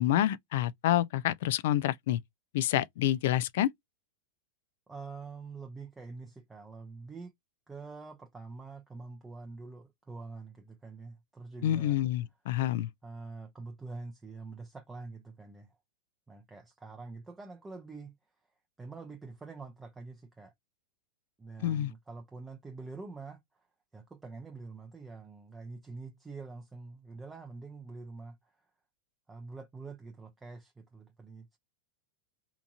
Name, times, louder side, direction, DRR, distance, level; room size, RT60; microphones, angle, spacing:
voice 1, 0.0-2.2 2.5-3.7 11.6-12.9 21.6-21.9, left 12 dB, 65° left, 0.3 m, -28 dB
voice 2, 4.9-7.3 7.7-12.0 13.0-15.8 16.3-18.2 18.8-20.5 21.4-23.7 23.9-28.7 29.3-31.6, right 3 dB, 10° right, 0.5 m, -46 dB
2.8 x 2.6 x 2.4 m
supercardioid pair, 145°, 0 cm